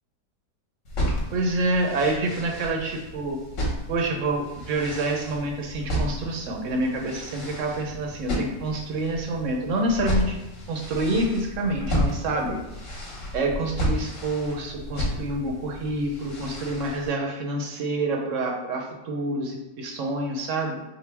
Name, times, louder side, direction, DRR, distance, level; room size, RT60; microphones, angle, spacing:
sound 1, 0.8-17.1, equal, 55° left, 1.2 m, -32 dB
voice 1, 1.3-3.4 3.9-10.4 10.7-12.6 13.3-20.8, right 2 dB, 65° right, 1 dB, 0.8 m, -27 dB
4.4 x 2.1 x 3.3 m, 1.0 s
omnidirectional pair, 1.8 m